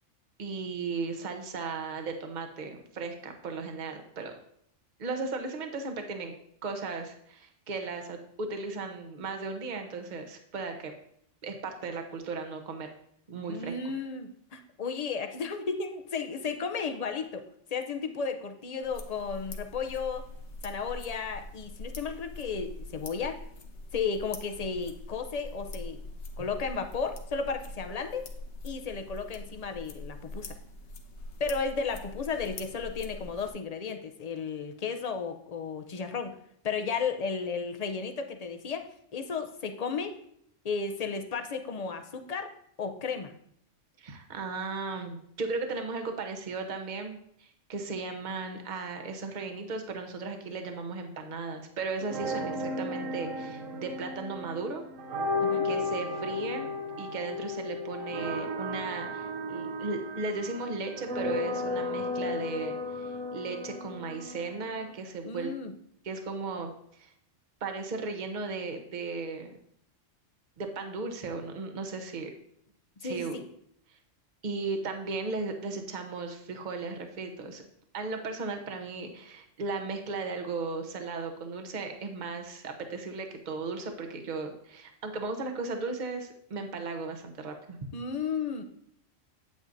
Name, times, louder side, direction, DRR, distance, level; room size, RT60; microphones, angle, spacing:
voice 1, 0.4-4.3 5.0-6.3 6.6-10.9 11.4-12.9 13.3-13.8 44.0-54.8 55.6-56.7 57.0-65.5 66.0-66.7 67.0-67.1 67.6-69.5 70.6-72.3 73.0-73.4 74.4-77.6 77.9-87.8, right 3 dB, 40° right, 4 dB, 1.0 m, -36 dB
voice 2, 13.5-17.4 17.7-20.3 20.6-23.4 23.9-26.0 26.4-28.3 28.6-30.5 31.4-36.4 36.6-38.9 39.1-40.1 40.6-42.5 42.8-43.3 55.4-55.7 65.2-65.7 73.0-73.5 87.9-88.6, left 5 dB, 40° left, 7 dB, 0.6 m, -34 dB
sound 1, 18.8-33.5, left 2 dB, 65° left, 1.2 m, -43 dB
sound 2, 52.0-64.9, left 2 dB, 85° right, 1.2 m, -34 dB
8.9 x 8.6 x 2.6 m, 0.68 s
omnidirectional pair, 1.3 m